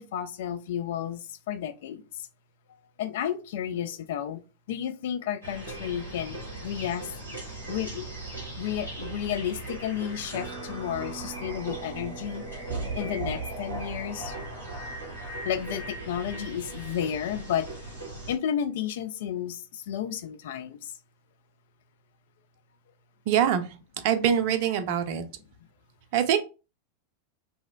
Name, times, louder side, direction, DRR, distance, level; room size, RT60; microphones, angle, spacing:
voice 1, 0.0-2.0 3.0-4.4 4.7-7.1 7.7-8.1 8.6-12.4 12.9-14.3 15.4-17.7 18.3-20.8, left 9 dB, 55° left, 0.3 m, -32 dB
sound 1, 5.4-18.4, right 2 dB, 90° left, 1.4 m, -38 dB
voice 2, 23.3-25.2 26.1-26.4, right 9 dB, 45° right, 0.4 m, -24 dB
2.9 x 2.8 x 2.3 m
figure-of-eight pair, 90°, 0 cm